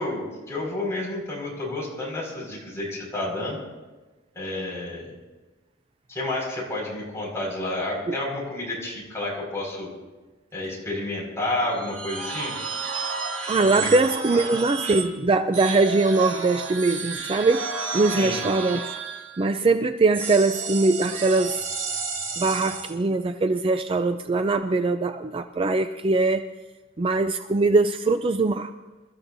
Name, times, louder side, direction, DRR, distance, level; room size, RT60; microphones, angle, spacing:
voice 1, 0.0-3.6 4.3-5.1 6.1-9.9 10.5-12.5 13.6-13.9 14.3-14.6 18.1-18.4, left 2 dB, 15° left, -4 dB, 5.2 m, -30 dB
sound 1, 11.7-15.1 15.5-19.5 20.1-22.9, right 5 dB, 75° right, 2.3 m, -32 dB
voice 2, 13.5-18.8 19.4-21.7 22.4-26.5 27.0-28.7, right 3 dB, 25° right, 8 dB, 0.4 m, -22 dB
28.0 x 13.5 x 2.7 m, 1.2 s
head